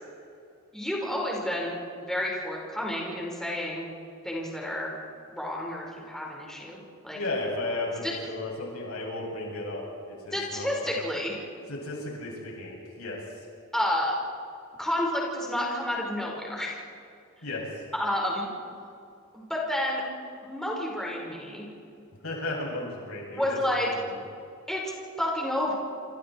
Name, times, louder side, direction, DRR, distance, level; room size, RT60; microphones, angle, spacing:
voice 1, 0.7-3.9 4.2-4.9 5.3-7.2 8.0-8.1 10.3-11.4 13.7-14.1 14.8-16.7 17.9-18.5 19.3-20.0 20.4-21.7 23.3-23.9 24.7-25.7, left 1 dB, ahead, -3 dB, 5.1 m, -30 dB
voice 2, 7.1-9.8 10.2-10.9 11.7-13.2 17.4-17.6 22.2-23.6 23.9-24.2, left 2 dB, 85° left, -2 dB, 7.9 m, -34 dB
28.5 x 27.0 x 4.7 m, 2.5 s
head